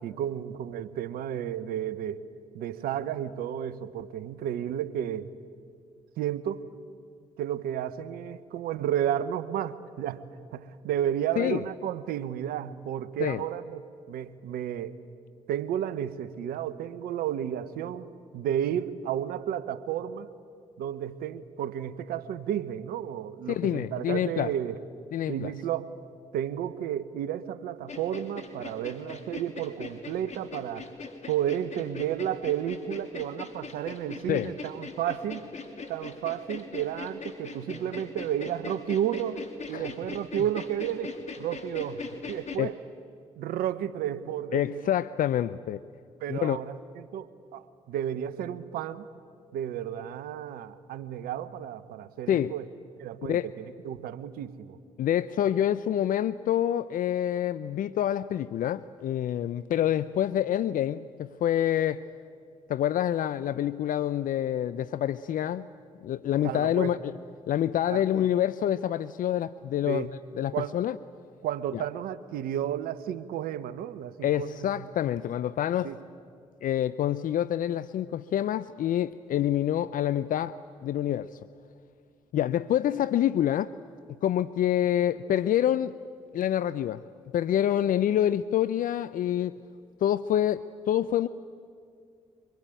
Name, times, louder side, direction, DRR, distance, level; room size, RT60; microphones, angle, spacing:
voice 1, 0.0-2.3 2.5-5.3 6.2-6.6 7.4-13.8 14.1-15.0 15.5-20.3 20.8-24.8 25.3-25.9 26.3-30.9 31.3-35.4 35.9-41.1 41.4-42.8 43.4-44.9 46.2-49.1 49.5-52.7 53.0-54.8 66.4-67.0 67.9-68.0 69.8-70.1 70.5-70.8 71.4-74.9 75.8-76.0, right 10 dB, 75° right, 14 dB, 1.0 m, -32 dB
voice 2, 23.5-24.5 25.1-25.5 34.3-34.5 39.7-39.8 42.6-42.7 44.5-45.8 46.3-46.6 52.3-52.5 53.2-53.5 55.0-62.0 62.7-65.7 66.0-67.2 67.5-70.1 70.3-71.0 71.7-71.8 74.2-75.9 76.6-81.3 82.3-83.7 84.2-85.9 86.3-87.0 87.3-89.6 90.0-91.3, left 11 dB, 65° left, 16 dB, 0.6 m, -27 dB
sound 1, 27.9-42.6, left 4 dB, 50° left, 2.7 m, -41 dB
25.0 x 21.5 x 9.1 m, 2.3 s
hypercardioid pair, 45°, 15 cm